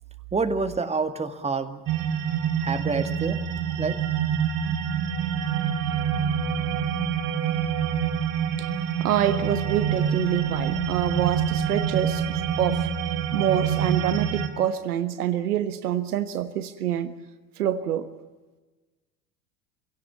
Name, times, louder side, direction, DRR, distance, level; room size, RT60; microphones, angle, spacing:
voice 1, 0.3-1.8 2.6-3.4 3.8-3.9, right 4 dB, 15° right, 1.9 m, -27 dB
sound 1, 1.9-14.5, right 8 dB, 45° right, 3.1 m, -26 dB
voice 2, 9.0-12.9 13.3-17.1 17.6-18.1, right 10 dB, 70° right, 1.5 m, -26 dB
26.5 x 17.0 x 8.7 m
figure-of-eight pair, 75°, 47 cm